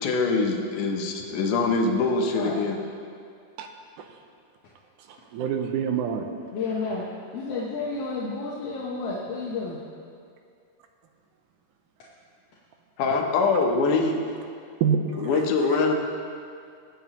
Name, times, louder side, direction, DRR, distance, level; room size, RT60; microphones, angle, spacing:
voice 1, 0.0-2.8 13.0-14.2 15.2-15.9, left 4 dB, 85° left, 2 dB, 2.5 m, -23 dB
voice 2, 5.1-6.3 14.8-15.4 15.7-15.8, right 7 dB, 85° right, 4 dB, 2.3 m, -27 dB
voice 3, 6.5-7.1 7.3-9.8, left 4 dB, 60° left, -5 dB, 1.9 m, -31 dB
20.5 x 8.4 x 3.0 m, 2.4 s
omnidirectional pair, 3.5 m